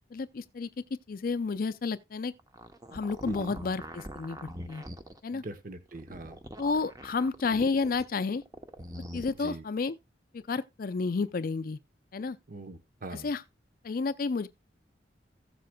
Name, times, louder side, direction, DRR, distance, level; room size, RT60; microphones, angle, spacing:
voice 1, 0.1-0.7 1.1-2.3 2.9-4.8 5.2-5.4 6.6-8.4 9.1-10.0 10.3-11.8 12.1-12.4 13.1-13.4 13.8-14.5, left 4 dB, 50° left, 0.4 m, -31 dB
sound 1, 2.4-5.2 5.9-8.0 8.4-9.3, equal, 20° right, 0.8 m, -43 dB
voice 2, 5.3-6.4 9.4-9.6 12.5-13.3, right 2 dB, 50° right, 0.9 m, -41 dB
15.5 x 7.6 x 2.2 m
head